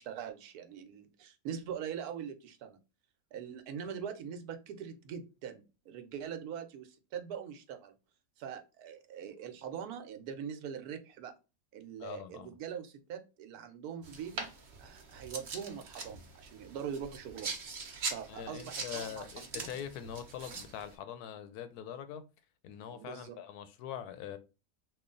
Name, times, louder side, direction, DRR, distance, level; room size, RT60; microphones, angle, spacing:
voice 1, 0.0-2.8 3.3-7.9 8.4-11.3 11.7-14.5 14.8-17.5 18.1-19.3 19.5-19.7 22.9-23.4, right 8 dB, 80° right, 1.1 m, -42 dB
voice 2, 12.0-12.6 18.3-22.2 22.6-24.4, left 9 dB, 85° left, 1.1 m, -43 dB
sound 1, 14.0-20.9, right 4 dB, 55° right, 0.9 m, -42 dB
3.1 x 2.4 x 3.7 m
omnidirectional pair, 1.6 m